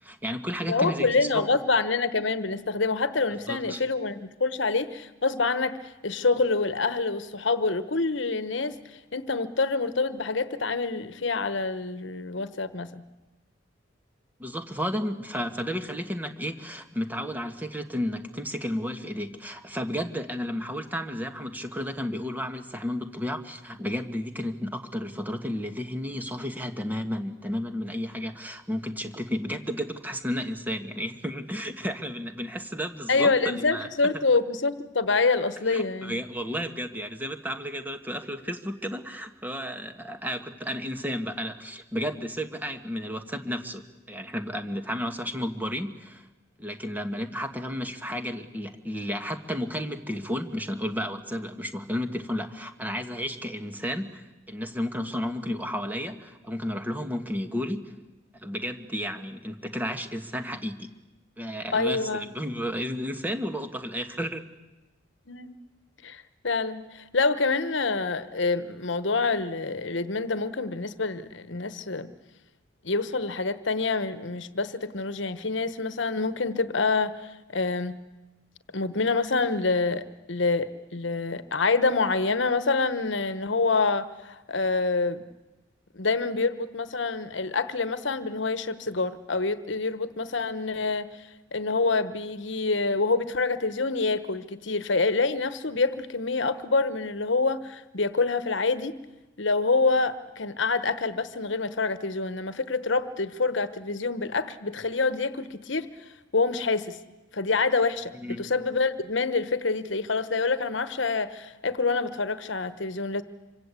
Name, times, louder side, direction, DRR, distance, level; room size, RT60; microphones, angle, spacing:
voice 1, 0.0-1.4 3.5-3.8 14.4-33.9 35.7-46.3 46.6-57.9 58.3-60.9 61.4-64.4 108.2-108.4, equal, 10° right, 7 dB, 1.6 m, -32 dB
voice 2, 0.7-8.8 9.1-13.0 33.1-36.2 61.7-62.3 65.3-65.5 66.0-72.1 72.8-78.0 78.7-85.2 85.9-91.1 91.5-98.9 99.4-105.9 106.3-107.0 107.3-113.2, left 3 dB, 65° left, 13 dB, 1.1 m, -26 dB
26.5 x 24.5 x 8.3 m, 1.1 s
head